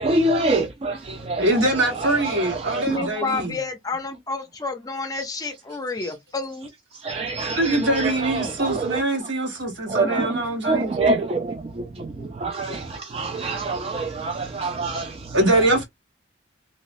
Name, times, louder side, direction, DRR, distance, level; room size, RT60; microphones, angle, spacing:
voice 1, 0.0-3.4 5.1-5.2 6.0-6.1 6.9-9.3 9.9-15.8, right 2 dB, 30° right, 0.3 m, -27 dB
voice 2, 1.4-3.6 7.6-10.9 15.3-15.8, right 1 dB, 70° right, 1.5 m, -23 dB
voice 3, 2.9-6.7, left 3 dB, 20° left, 0.5 m, -29 dB
3.1 x 3.0 x 2.5 m
head